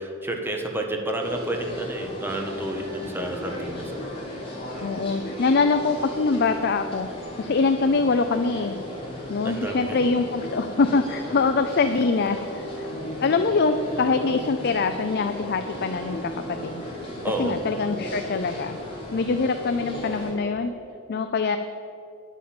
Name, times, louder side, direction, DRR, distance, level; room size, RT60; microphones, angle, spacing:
voice 1, 0.0-4.1 9.4-10.0 17.2-17.6, right 1 dB, 10° right, 2 dB, 1.2 m, -30 dB
sound 1, 1.2-20.3, left 1 dB, 25° left, 3.2 m, -35 dB
voice 2, 4.8-7.1 7.4-8.8 9.3-12.9 13.2-16.8 17.4-18.8 19.1-20.7 21.1-21.6, left 4 dB, 50° left, 8 dB, 0.5 m, -24 dB
10.0 x 8.3 x 7.7 m, 2.6 s
head